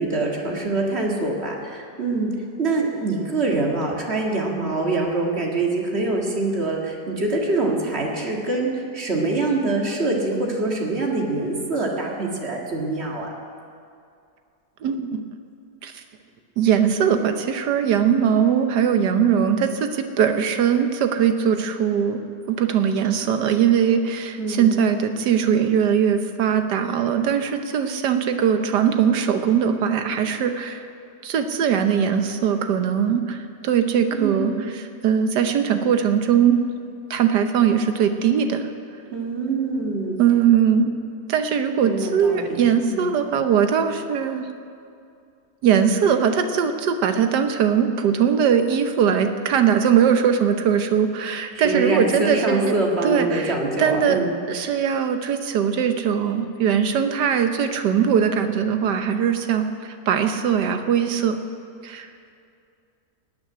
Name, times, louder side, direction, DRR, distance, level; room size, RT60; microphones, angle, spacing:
voice 1, 0.0-2.3 2.6-8.7 8.9-13.3 24.4-24.7 34.1-34.7 39.1-40.2 41.8-42.6 42.9-43.1 51.6-54.3, right 2 dB, 40° right, -1 dB, 2.2 m, -24 dB
voice 2, 14.8-15.2 15.8-16.0 16.6-22.2 22.5-30.8 31.2-36.6 37.1-38.7 40.2-40.9 41.3-44.5 45.6-52.7 53.0-54.2 54.5-61.4 61.8-62.1, right 8 dB, 85° right, 7 dB, 1.5 m, -20 dB
17.5 x 6.3 x 9.8 m, 2.4 s
omnidirectional pair, 1.8 m